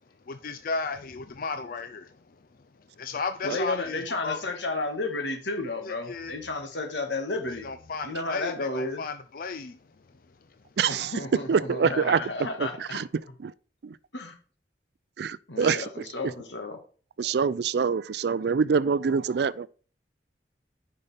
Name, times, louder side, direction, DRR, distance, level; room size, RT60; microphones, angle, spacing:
voice 1, 0.3-2.1 3.0-4.4 5.8-6.4 7.6-9.8, left 4 dB, 50° left, 0.5 m, -34 dB
voice 2, 3.4-7.7 8.0-9.0 10.9-13.0 14.1-14.3 15.5-16.8, left 2 dB, 80° left, 1.7 m, -32 dB
voice 3, 10.8-11.1 11.5-12.2 12.6-13.1 13.4-13.5 13.8-14.0 15.2-15.8 17.2-19.7, right 6 dB, 65° right, 0.4 m, -25 dB
9.8 x 5.3 x 3.4 m
head